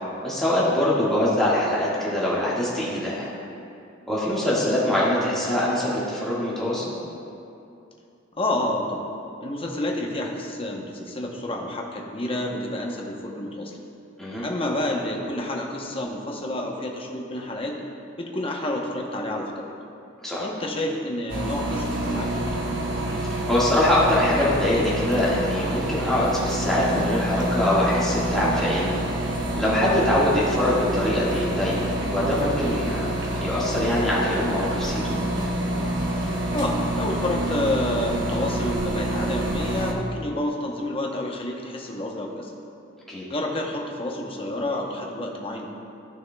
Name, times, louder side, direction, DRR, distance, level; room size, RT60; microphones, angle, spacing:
voice 1, 0.2-3.3 4.1-6.9 14.2-14.4 20.2-20.5 23.2-28.9 29.3-33.1 33.4-35.2 43.1-43.2, left 1 dB, ahead, -9 dB, 1.6 m, -23 dB
voice 2, 1.0-1.4 8.4-9.0 9.4-13.8 14.4-17.8 18.2-19.7 20.4-22.6 30.0-30.4 36.5-42.5 43.3-45.7, left 1 dB, 25° left, 0 dB, 0.8 m, -29 dB
sound 1, 21.3-39.9, right 1 dB, 60° right, 1.0 m, -27 dB
13.5 x 6.4 x 2.2 m, 2.6 s
head